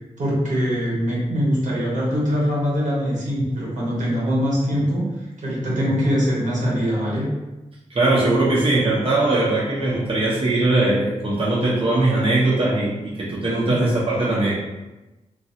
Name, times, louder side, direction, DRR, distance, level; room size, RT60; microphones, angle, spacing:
voice 1, 0.2-5.1 5.4-7.3 13.7-13.8, equal, 75° right, -6 dB, 1.3 m, -22 dB
voice 2, 7.9-14.6, right 2 dB, 45° right, -7 dB, 0.9 m, -20 dB
3.1 x 2.4 x 2.8 m, 1.1 s
cardioid pair, 45°, 13 cm